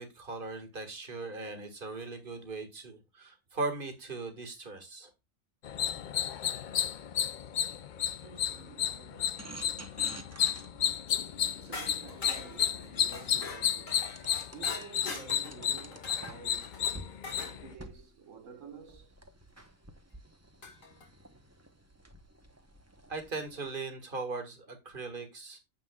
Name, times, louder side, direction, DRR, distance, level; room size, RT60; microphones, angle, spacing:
voice 1, 0.0-5.1 23.1-25.6, right 3 dB, 40° right, 2.0 m, -39 dB
sound 1, 5.6-17.7, left 9 dB, 60° left, 0.5 m, -32 dB
voice 2, 8.2-10.0 10.4-10.7 11.5-14.2 14.5-16.8 17.4-19.1, right 6 dB, 75° right, 1.7 m, -51 dB
sound 2, 9.4-13.3 14.2-16.6 16.9-17.1 17.6-23.7, right 2 dB, 15° right, 0.9 m, -51 dB
sound 3, 11.7-17.6 19.6-19.7 20.6-21.1, left 3 dB, 85° left, 2.3 m, -43 dB
9.5 x 7.3 x 2.3 m
omnidirectional pair, 1.4 m